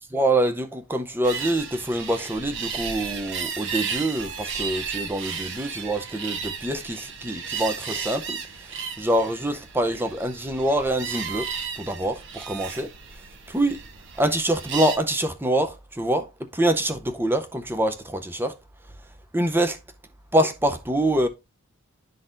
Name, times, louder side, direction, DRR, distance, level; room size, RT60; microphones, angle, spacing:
voice 1, 0.1-11.5 11.8-12.9 13.5-13.8 14.2-18.5 19.3-19.8 20.3-21.3, right 1 dB, 10° right, 0.6 m, -25 dB
sound 1, 1.2-15.0, right 6 dB, 55° right, 0.9 m, -34 dB
11.0 x 3.9 x 2.5 m
head